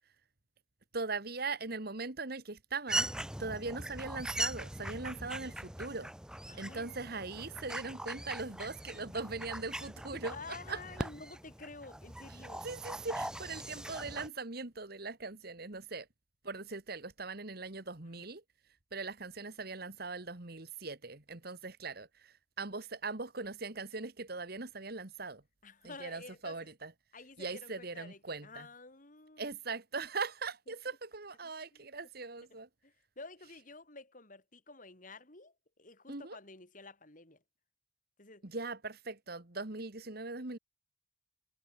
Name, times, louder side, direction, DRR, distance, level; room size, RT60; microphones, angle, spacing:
voice 1, 0.9-3.1 3.4-6.1 6.5-11.1 12.3-16.1 16.4-18.4 18.9-25.4 25.8-26.9 27.4-28.7 29.4-32.7 36.1-36.4 38.4-40.6, right 3 dB, 55° right, 2.0 m, -40 dB
sound 1, 2.9-14.3, right 1 dB, 5° right, 1.8 m, -40 dB
voice 2, 6.5-6.9 10.1-12.7 18.2-18.3 25.6-26.7 27.1-29.5 30.9-31.0 31.4-31.9 32.5-37.4 38.2-38.5, left 3 dB, 45° left, 4.0 m, -51 dB
head